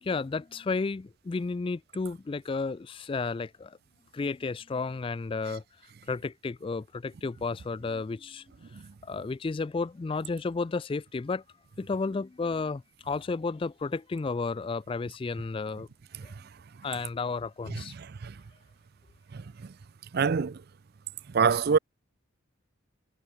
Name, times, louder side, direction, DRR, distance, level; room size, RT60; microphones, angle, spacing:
voice 1, 0.0-3.8 4.1-5.6 6.1-8.5 9.0-11.4 11.8-15.9 16.2-16.3 16.8-17.9, left 4 dB, 25° left, 0.3 m, -32 dB
voice 2, 20.1-20.6 21.3-21.8, right 6 dB, 50° right, 0.4 m, -23 dB
head